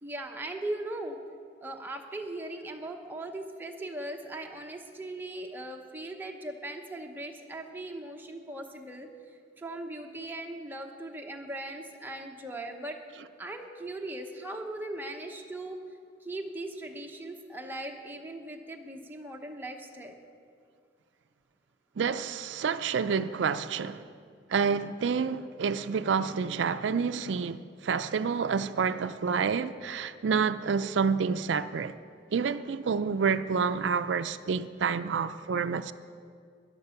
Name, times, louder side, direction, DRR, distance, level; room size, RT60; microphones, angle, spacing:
voice 1, 0.0-1.2 1.6-9.1 9.6-13.0 13.4-15.8 16.2-20.2, right 1 dB, 10° right, 1.0 m, -39 dB
voice 2, 22.0-24.1 24.5-32.0 32.3-35.9, right 6 dB, 80° right, 0.4 m, -28 dB
13.5 x 10.5 x 5.7 m
head